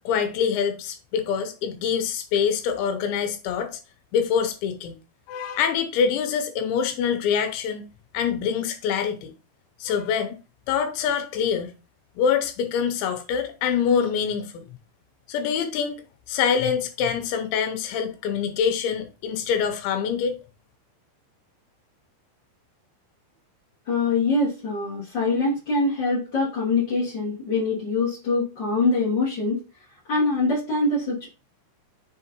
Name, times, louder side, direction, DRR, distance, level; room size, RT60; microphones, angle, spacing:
voice 1, 0.0-3.8 4.1-5.0 5.3-9.3 9.8-10.4 10.7-11.7 12.2-14.7 15.3-16.0 16.3-20.4, left 7 dB, 85° left, 3.0 m, -25 dB
voice 2, 23.9-29.6 30.1-31.3, left 3 dB, 50° left, 1.3 m, -24 dB
7.1 x 3.7 x 4.4 m
omnidirectional pair, 5.3 m